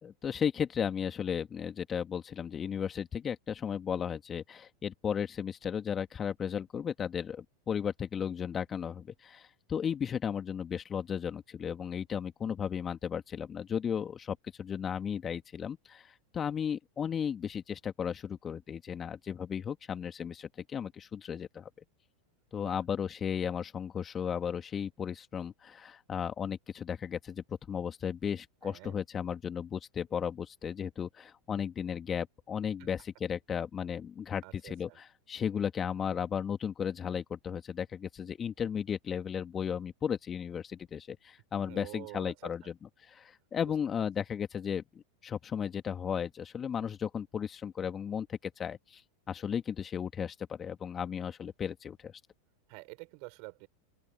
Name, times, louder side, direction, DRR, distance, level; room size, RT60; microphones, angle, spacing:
voice 1, 0.0-21.7 22.5-44.8 45.2-49.0 49.3-52.2, left 8 dB, 25° left, 2.5 m, -35 dB
voice 2, 28.6-29.0 34.4-35.0 41.7-42.7 52.7-53.7, right 36 dB, 55° right, 6.3 m, -48 dB
open air
hypercardioid pair, 90°, 0 cm